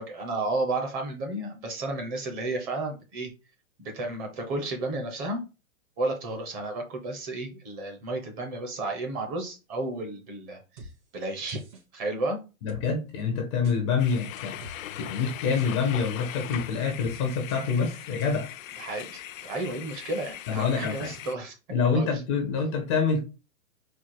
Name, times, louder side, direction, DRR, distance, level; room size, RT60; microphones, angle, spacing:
voice 1, 0.0-3.3 3.8-5.4 6.0-11.6 11.9-12.4 18.8-21.6 21.9-22.2, right 2 dB, 20° right, 0.8 m, -32 dB
sound 1, 10.8-10.9 11.5-11.8 12.7-12.8 13.6-13.8 14.4-14.8 15.6-15.7 16.5-16.7 17.0-17.1 17.5-17.6 18.2-18.3, right 1 dB, 50° right, 2.2 m, -45 dB
voice 2, 12.6-18.5 20.5-21.1 21.7-23.2, left 5 dB, 20° left, 0.5 m, -26 dB
sound 2, 14.0-21.4, left 11 dB, 70° left, 0.6 m, -40 dB
4.4 x 2.4 x 4.5 m
hypercardioid pair, 155°, 41 cm